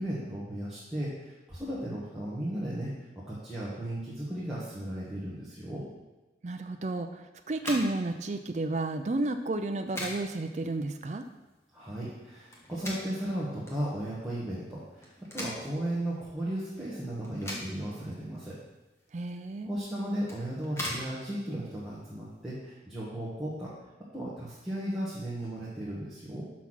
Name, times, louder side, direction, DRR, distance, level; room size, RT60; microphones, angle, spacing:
voice 1, 0.0-2.9 3.3-5.8 11.7-15.1 15.3-18.6 19.6-23.7 24.1-26.5, right 1 dB, ahead, -10 dB, 1.4 m, -35 dB
voice 2, 6.4-11.2 19.1-19.7, right 2 dB, 40° right, 6 dB, 0.4 m, -32 dB
sound 1, 7.5-22.5, left 1 dB, 15° left, 1.3 m, -43 dB
5.9 x 5.8 x 6.2 m, 1.1 s
head